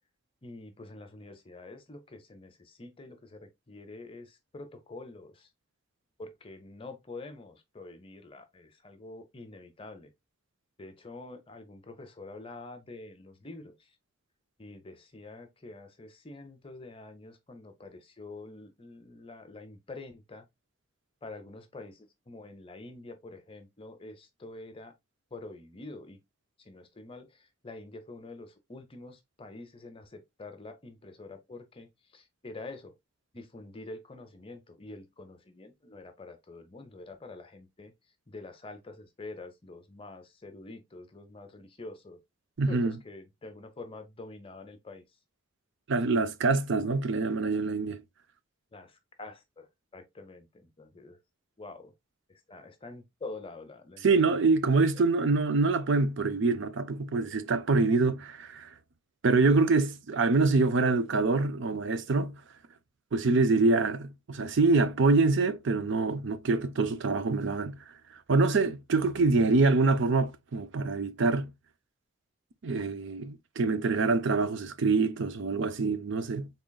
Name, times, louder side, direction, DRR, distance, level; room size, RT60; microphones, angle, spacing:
voice 1, 0.4-5.5 6.2-10.1 10.8-14.0 14.6-20.5 21.2-24.9 25.3-26.2 26.6-32.9 33.3-37.9 38.3-42.2 42.7-45.0 48.7-51.2 51.6-51.9 52.3-54.5, left 2 dB, 25° left, 0.7 m, -46 dB
voice 2, 42.6-42.9 45.9-48.0 54.0-58.7 59.2-62.4 63.1-67.8 68.3-71.5 72.6-76.5, right 3 dB, 60° right, 0.5 m, -25 dB
3.8 x 3.8 x 2.3 m
head